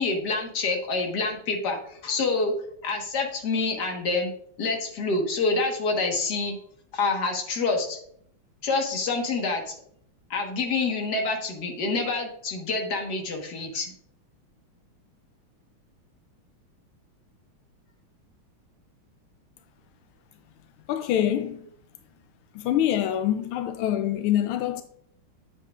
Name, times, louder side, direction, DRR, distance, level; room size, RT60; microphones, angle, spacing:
voice 1, 0.0-2.5 2.8-4.3 4.6-6.6 6.9-8.0 8.6-9.7 10.3-13.9, left 3 dB, 55° left, 2.0 m, -27 dB
voice 2, 20.9-21.7 22.5-24.8, left 11 dB, 90° left, 1.4 m, -25 dB
9.4 x 7.6 x 2.5 m
omnidirectional pair, 2.2 m